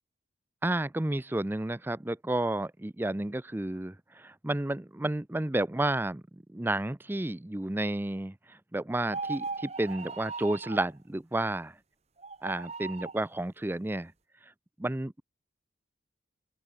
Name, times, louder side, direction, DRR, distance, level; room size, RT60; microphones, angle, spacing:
voice 1, 0.6-11.7 12.4-14.1 14.8-15.2, right 1 dB, 10° right, 0.5 m, -31 dB
sound 1, 9.0-10.9 12.2-13.2, right 4 dB, 35° right, 1.5 m, -38 dB
open air
head